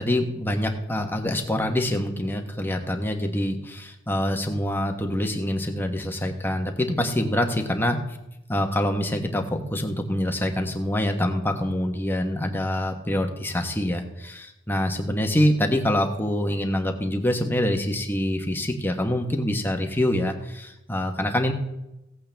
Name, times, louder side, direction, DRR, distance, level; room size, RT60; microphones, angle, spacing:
voice 1, 0.0-8.0 8.5-21.5, left 1 dB, 10° left, 4 dB, 1.2 m, -25 dB
17.0 x 8.4 x 3.4 m, 0.90 s
head